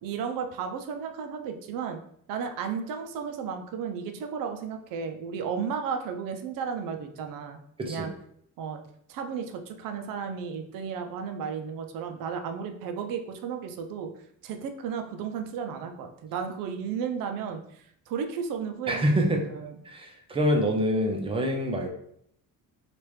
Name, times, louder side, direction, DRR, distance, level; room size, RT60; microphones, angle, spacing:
voice 1, 0.0-2.0 2.3-7.6 7.9-8.1 8.6-8.8 9.1-14.1 14.4-19.2 19.5-19.8, right 6 dB, 70° right, 5 dB, 0.5 m, -34 dB
voice 2, 18.9-19.4 19.9-21.9, equal, 15° right, 2 dB, 0.4 m, -26 dB
3.2 x 2.5 x 3.1 m, 0.68 s
cardioid pair, 170°, 35 cm